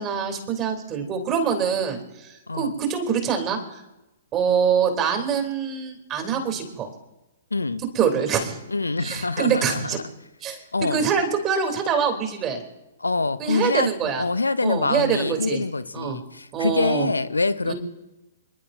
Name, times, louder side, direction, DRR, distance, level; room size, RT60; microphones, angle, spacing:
voice 1, 0.0-3.6 4.3-6.9 7.9-8.6 9.0-10.0 10.4-10.6 10.9-12.6 13.4-14.2 14.6-15.6 15.9-16.2 16.5-17.1 17.6-17.7, right 7 dB, 25° right, 4 dB, 3.1 m, -24 dB
voice 2, 7.5-7.8 8.7-10.0 10.7-11.0 13.0-13.9 14.2-17.7, left 3 dB, 80° left, 14 dB, 0.7 m, -25 dB
28.0 x 11.0 x 2.7 m, 1.0 s
figure-of-eight pair, 115°, 0 cm